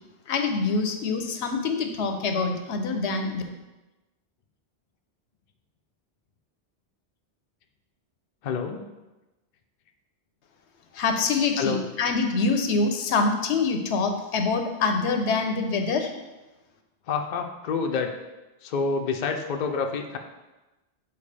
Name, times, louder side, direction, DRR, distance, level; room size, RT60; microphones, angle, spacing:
voice 1, 0.3-3.4 10.9-16.1, left 4 dB, 80° left, 5 dB, 1.0 m, -25 dB
voice 2, 8.4-8.8 11.6-11.8 17.1-18.1 18.6-20.2, left 5 dB, 55° left, 4 dB, 0.6 m, -27 dB
7.1 x 4.4 x 3.3 m, 1.1 s
omnidirectional pair, 1.2 m